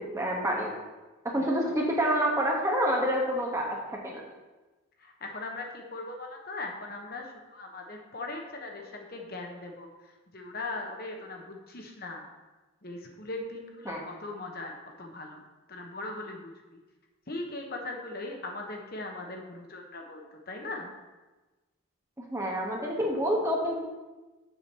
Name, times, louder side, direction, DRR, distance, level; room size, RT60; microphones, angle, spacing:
voice 1, 0.1-0.7 1.3-3.7 4.0-4.2 13.8-14.0 22.3-23.8, equal, 15° right, -1 dB, 1.2 m, -27 dB
voice 2, 5.0-9.9 10.3-12.3 12.8-15.4 15.7-16.5 17.3-20.9, left 2 dB, 45° left, 2 dB, 1.1 m, -39 dB
7.2 x 5.0 x 7.0 m, 1.2 s
head